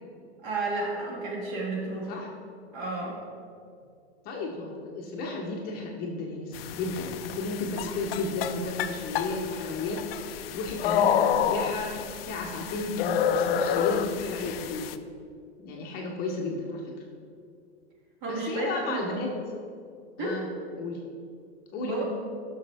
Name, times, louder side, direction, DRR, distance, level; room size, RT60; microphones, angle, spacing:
voice 1, 0.4-2.2 2.7-3.2 18.2-19.0 20.2-20.4 21.8-22.0, right 2 dB, 45° right, -2 dB, 2.3 m, -32 dB
voice 2, 4.2-14.9 15.6-16.9 18.3-19.3 20.2-20.5 20.8-21.0 21.7-22.0, left 3 dB, 25° left, -1 dB, 0.9 m, -33 dB
sound 1, 6.5-15.0, left 8 dB, 60° left, 0.5 m, -29 dB
11.0 x 6.3 x 3.4 m, 2.3 s
hypercardioid pair, 145°, 34 cm